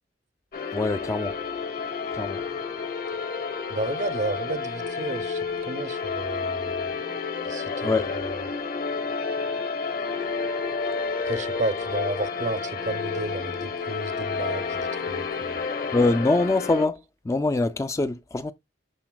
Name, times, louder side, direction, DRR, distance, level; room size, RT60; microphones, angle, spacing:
sound 1, 0.5-16.9, left 5 dB, 50° left, 1.0 m, -30 dB
voice 1, 0.7-1.4 2.1-2.4 7.8-8.1 15.9-18.5, left 2 dB, 15° left, 0.3 m, -24 dB
voice 2, 3.7-6.9 7.5-7.9 8.2-8.4 11.2-15.6, right 2 dB, 40° right, 0.6 m, -32 dB
12.0 x 4.0 x 2.2 m
head